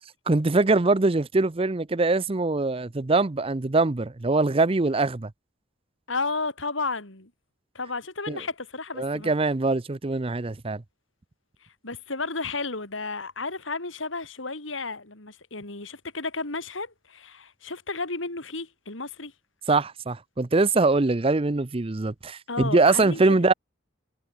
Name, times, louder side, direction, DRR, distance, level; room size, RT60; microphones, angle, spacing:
voice 1, 0.3-5.3 8.3-8.4 9.0-10.8 19.7-23.5, right 3 dB, 30° right, 0.6 m, -23 dB
voice 2, 6.1-7.3 7.7-9.3 11.8-19.3 22.5-23.4, left 3 dB, 85° left, 4.4 m, -33 dB
head